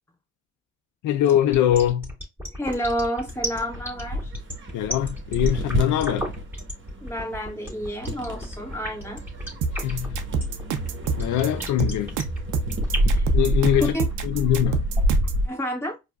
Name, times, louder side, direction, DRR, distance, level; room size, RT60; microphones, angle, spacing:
voice 1, 1.0-2.1 4.7-6.3 9.7-10.2 11.2-12.2 13.3-14.0 14.2-14.8, left 11 dB, 75° left, 0.5 m, -22 dB
sound 1, 1.4-13.2, equal, 5° right, 1.8 m, -33 dB
voice 2, 2.5-4.3 7.0-9.3 12.9-13.3 13.9-14.0 15.4-16.0, equal, 10° left, 1.5 m, -30 dB
sound 2, 3.3-15.5, equal, 40° right, 1.1 m, -28 dB
sound 3, 9.6-15.4, right 5 dB, 85° right, 0.7 m, -27 dB
4.6 x 2.5 x 2.2 m
cardioid pair, 90°, 30 cm